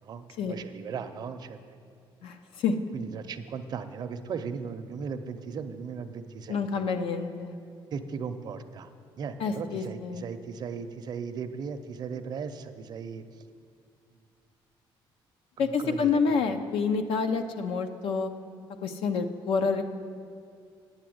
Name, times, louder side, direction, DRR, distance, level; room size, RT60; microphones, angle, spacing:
voice 1, 0.0-1.8 2.9-6.8 7.9-8.9 9.2-13.2 15.6-16.6, right 6 dB, 50° right, 9 dB, 0.6 m, -37 dB
voice 2, 2.2-2.8 6.5-7.6 9.4-10.2 15.6-18.3 18.8-19.8, left 5 dB, 75° left, 8 dB, 0.7 m, -28 dB
9.6 x 6.8 x 7.8 m, 2.3 s
cardioid pair, 140°, 9 cm